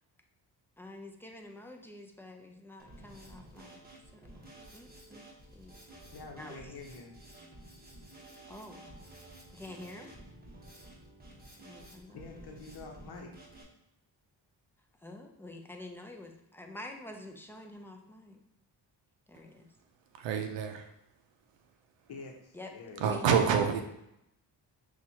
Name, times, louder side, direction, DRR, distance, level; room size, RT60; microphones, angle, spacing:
voice 1, 0.8-3.8 4.1-5.2 5.5-5.7 6.4-6.7 8.5-8.8 9.5-10.1 11.6-12.2 15.0-18.4 19.3-19.7 22.5-22.7 23.0-23.7, left 2 dB, 5° left, 2 dB, 0.5 m, -47 dB
Drum kit, 2.8-13.6, right 1 dB, 20° right, 1.1 m, -52 dB
voice 2, 6.1-7.2 12.1-13.3 22.1-23.2, left 3 dB, 60° left, 2 dB, 0.9 m, -47 dB
voice 3, 20.2-20.8 23.0-23.8, right 7 dB, 90° right, 6 dB, 0.5 m, -27 dB
5.9 x 2.5 x 2.8 m, 0.82 s
cardioid pair, 80°, 43 cm